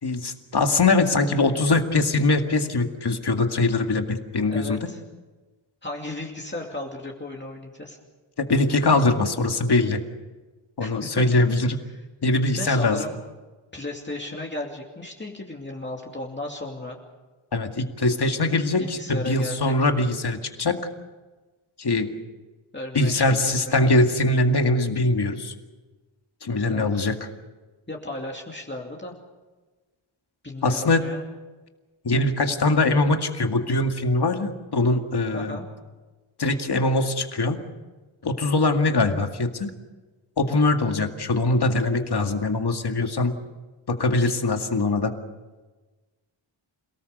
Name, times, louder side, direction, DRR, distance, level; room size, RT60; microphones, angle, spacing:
voice 1, 0.0-4.8 8.4-10.0 10.8-11.8 12.2-13.0 17.5-20.8 21.8-22.1 22.9-25.5 26.4-27.1 30.6-31.0 32.0-35.6 36.4-37.6 38.2-39.7 40.4-43.3 43.9-45.1, left 2 dB, 50° left, 5 dB, 2.1 m, -22 dB
voice 2, 4.5-5.0 5.8-8.0 10.8-11.5 11.9-12.0 12.5-13.2 13.7-17.0 18.8-19.9 22.7-23.7 26.7-27.1 27.9-29.1 30.4-31.2 35.3-35.7, left 1 dB, 20° left, -1 dB, 2.6 m, -35 dB
28.5 x 18.0 x 6.7 m, 1.3 s
wide cardioid pair, 110°, 49 cm